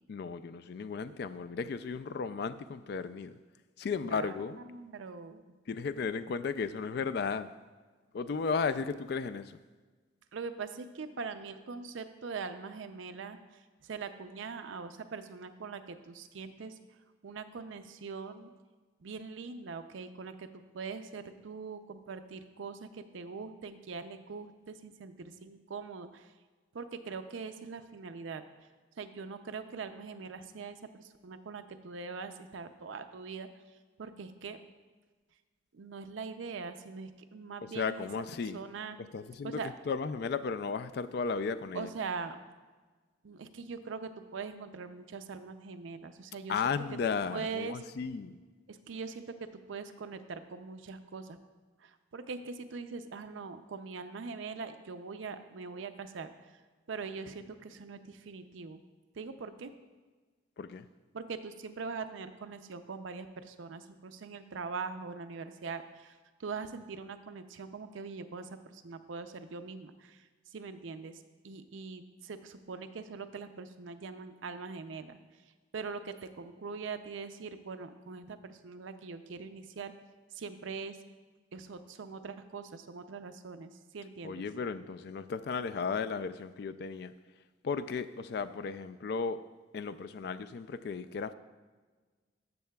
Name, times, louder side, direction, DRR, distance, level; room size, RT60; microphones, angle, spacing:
voice 1, 0.1-3.4 3.8-4.6 5.7-7.5 8.1-9.6 37.8-38.6 39.1-39.6 39.9-41.9 46.5-48.4 60.6-60.9 84.2-87.1 87.6-89.4 89.7-91.3, left 5 dB, 55° left, 12 dB, 0.3 m, -35 dB
voice 2, 4.0-4.3 4.7-5.4 10.3-16.8 17.2-18.5 19.0-26.3 26.7-28.4 29.0-33.5 34.0-34.6 35.7-38.1 38.5-39.0 39.4-39.7 41.7-42.4 43.2-46.8 47.3-47.8 48.7-51.4 51.8-56.5 56.9-58.8 59.2-59.7 61.1-75.2 75.7-79.9 80.3-81.0 81.5-84.4, right 5 dB, 75° right, 9 dB, 0.5 m, -42 dB
14.0 x 6.5 x 2.3 m, 1.4 s
head